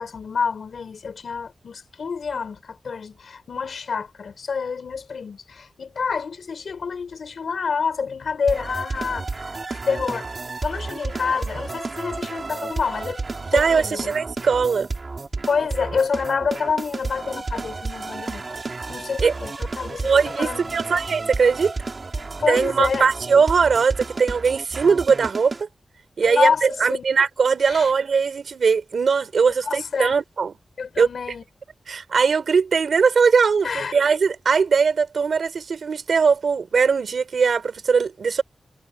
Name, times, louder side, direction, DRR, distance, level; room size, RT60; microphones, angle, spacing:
voice 1, 0.0-9.5 9.9-10.3 10.6-13.2 13.5-14.1 15.5-18.6 18.9-20.1 20.4-21.0 22.1-23.1 26.2-27.0 27.6-27.9 29.6-30.2 30.8-31.4 33.6-34.0, left 5 dB, 75° left, 3.9 m, -27 dB
sound 1, 8.5-25.6, right 3 dB, 45° right, 2.6 m, -32 dB
voice 2, 13.5-14.9 19.2-19.3 20.0-21.7 22.5-25.7 26.2-30.5 31.0-31.1 31.9-38.4, right 5 dB, 80° right, 2.9 m, -20 dB
wide cardioid pair, 90°, 0 cm